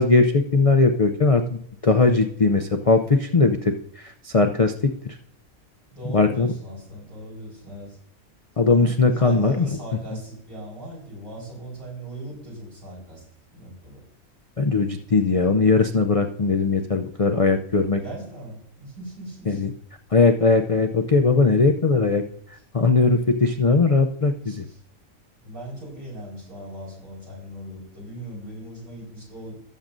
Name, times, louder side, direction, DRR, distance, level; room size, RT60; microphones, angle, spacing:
voice 1, 0.0-4.7 5.0-5.2 6.1-6.5 8.6-9.6 14.6-18.0 19.5-19.7 20.1-22.2 22.7-24.6, left 3 dB, 60° left, 5 dB, 0.3 m, -19 dB
voice 2, 5.9-8.0 8.7-13.2 13.5-14.0 18.0-19.6 24.4-24.8 25.4-29.6, right 1 dB, 85° right, -3 dB, 5.0 m, -38 dB
17.5 x 7.3 x 2.6 m, 0.69 s
omnidirectional pair, 1.5 m